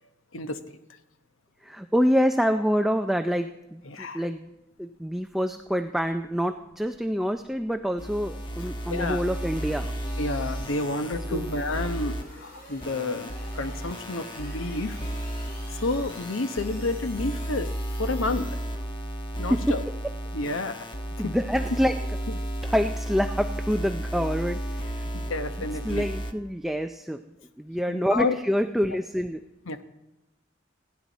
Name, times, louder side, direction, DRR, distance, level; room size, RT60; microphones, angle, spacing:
voice 1, 0.3-0.8 3.9-4.2 8.9-9.2 10.2-15.0 15.8-17.7 18.0-18.6 19.4-19.8 20.3-20.9 21.2-21.3 25.1-26.1 27.9-28.4 29.7-29.8, left 2 dB, 85° left, 8 dB, 1.1 m, -30 dB
voice 2, 1.6-4.5 4.8-10.0 11.3-11.5 19.5-20.1 21.2-22.0 22.6-25.1 25.8-27.2 27.6-29.5, equal, ahead, 6 dB, 0.4 m, -26 dB
sound 1, 4.6-19.2, left 1 dB, 55° left, 7.3 m, -50 dB
sound 2, 8.0-12.2 12.8-26.3, right 1 dB, 25° left, 1.1 m, -33 dB
28.0 x 10.5 x 4.1 m, 1.0 s
head